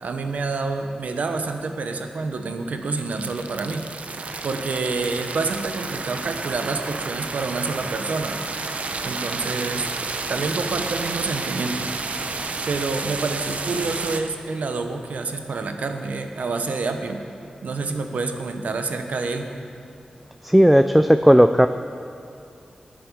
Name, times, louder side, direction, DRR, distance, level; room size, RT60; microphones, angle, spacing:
voice 1, 0.0-3.9 4.4-8.4 9.0-9.9 10.3-11.9 12.7-17.2 17.6-19.5, right 3 dB, 85° right, 6 dB, 1.0 m, -28 dB
sound 1, 2.7-14.2, right 3 dB, 65° right, 0.8 m, -31 dB
voice 2, 20.4-21.7, equal, 5° right, 9 dB, 0.3 m, -14 dB
12.0 x 7.7 x 8.4 m, 2.5 s
wide cardioid pair, 85°, 3 cm